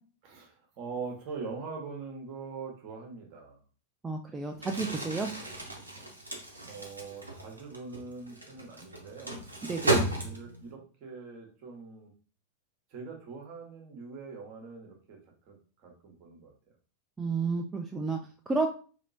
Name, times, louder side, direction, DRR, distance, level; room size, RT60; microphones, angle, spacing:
voice 1, 0.2-3.6 6.6-9.4 10.2-12.1 12.9-15.2 15.5-16.5, right 4 dB, 45° right, 1 dB, 1.1 m, -43 dB
voice 2, 4.0-5.3 9.7-10.0 17.2-18.2 18.5-18.7, right 3 dB, 15° right, 2 dB, 0.3 m, -31 dB
Crumpling crinkling, 4.5-10.7, right 2 dB, 85° right, 0.7 m, -34 dB
2.9 x 2.9 x 2.6 m, 0.39 s
figure-of-eight pair, 90°, 0 cm